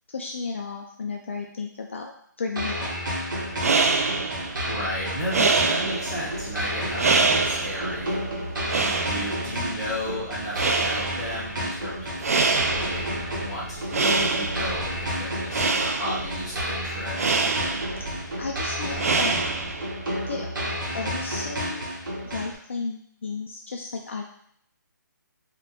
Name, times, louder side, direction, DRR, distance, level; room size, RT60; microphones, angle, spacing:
voice 1, 0.1-2.1 2.4-2.9 18.4-19.4 20.3-20.5 20.9-21.9 22.2-24.2, left 4 dB, 40° left, 1 dB, 0.3 m, -33 dB
sound 1, 2.6-22.6, equal, 90° right, 1.4 m, -31 dB
sound 2, 3.4-20.0, right 4 dB, 50° right, 0.4 m, -27 dB
voice 2, 4.6-8.3 8.7-17.4, equal, ahead, -11 dB, 0.6 m, -34 dB
4.3 x 2.4 x 2.6 m, 0.66 s
hypercardioid pair, 170°, 10 cm